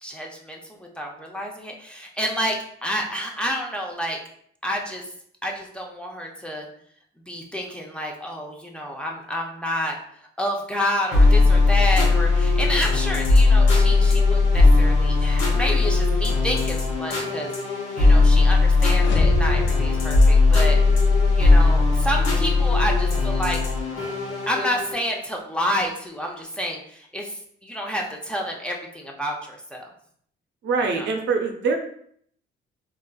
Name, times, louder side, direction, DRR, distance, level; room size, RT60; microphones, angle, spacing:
voice 1, 0.0-4.2 4.6-5.1 5.4-6.7 7.3-10.0 10.4-20.8 21.3-23.6 24.5-29.9 31.0-31.1, equal, 5° left, -1 dB, 0.6 m, -29 dB
sound 1, 11.1-24.9, left 3 dB, 85° left, 0.9 m, -18 dB
sound 2, 18.9-21.1, left 1 dB, 70° left, 0.5 m, -29 dB
voice 2, 30.6-31.8, right 4 dB, 65° right, 3 dB, 0.6 m, -23 dB
3.4 x 2.4 x 2.3 m, 0.64 s
cardioid pair, 90°, 20 cm